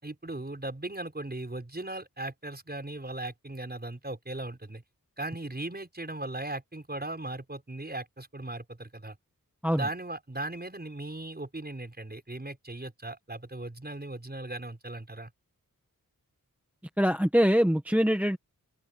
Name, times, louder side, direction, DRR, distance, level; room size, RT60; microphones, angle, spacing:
voice 1, 0.0-4.8 5.2-9.2 9.7-15.3, right 2 dB, 25° right, 6.0 m, -38 dB
voice 2, 17.0-18.4, equal, 5° right, 1.2 m, -23 dB
open air
wide cardioid pair, 90°, 35 cm